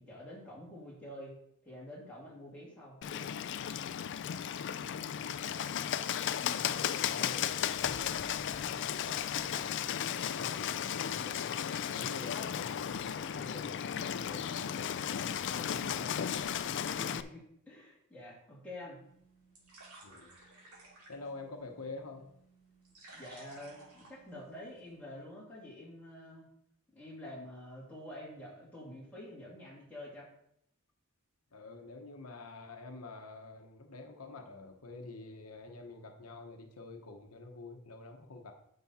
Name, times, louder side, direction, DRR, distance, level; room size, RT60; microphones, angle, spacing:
voice 1, 0.0-1.3 1.6-3.2 15.6-15.8 16.9-19.0 23.1-26.4 26.9-30.3, left 1 dB, 5° left, -6 dB, 2.9 m, -48 dB
Bird, 3.0-17.2, left 9 dB, 55° left, 0.4 m, -35 dB
voice 2, 5.4-5.8 6.5-11.5 11.9-16.3 20.0-20.4 21.1-22.3 31.5-38.5, left 3 dB, 80° left, 4 dB, 1.0 m, -48 dB
sound 1, 19.0-25.0, right 2 dB, 85° right, 3.2 m, -57 dB
9.5 x 5.7 x 4.2 m, 0.73 s
head